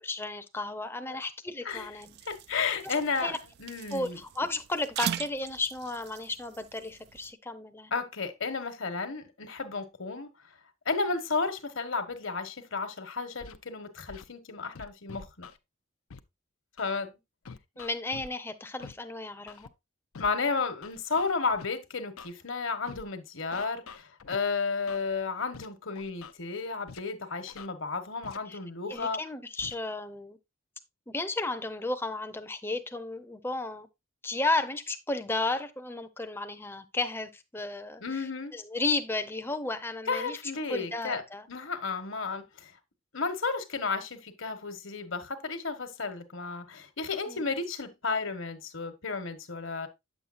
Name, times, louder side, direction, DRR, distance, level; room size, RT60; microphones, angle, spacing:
voice 1, 0.0-2.2 2.8-3.0 3.2-3.4 3.9-7.9 17.8-19.7 28.5-28.6 28.9-30.4 31.1-33.9 34.2-38.2 38.5-41.5 47.3-47.5, left 2 dB, 10° left, 0.6 m, -33 dB
sound 1, 1.7-7.3, right 10 dB, 50° right, 0.3 m, -40 dB
voice 2, 2.3-3.3 3.6-4.2 7.9-10.3 10.8-15.5 16.8-17.1 20.2-29.2 38.0-38.5 40.1-41.2 41.5-42.7 43.1-49.9, left 4 dB, 65° left, 1.3 m, -33 dB
Scratching (performance technique), 13.4-13.6 14.1-14.2 14.7-15.6 16.1-16.2 16.8-16.9 17.4-18.3 18.8-18.9 19.5-19.7 20.1-20.3 20.8-21.7 22.2-22.3 22.8-23.0 23.5-24.4 24.9-25.0 25.5-25.7 25.9-26.3 26.9-27.0 27.5-27.7 28.2-28.4 28.9-29.0 29.6-29.7, left 5 dB, 80° left, 0.6 m, -45 dB
9.2 x 7.2 x 2.5 m
head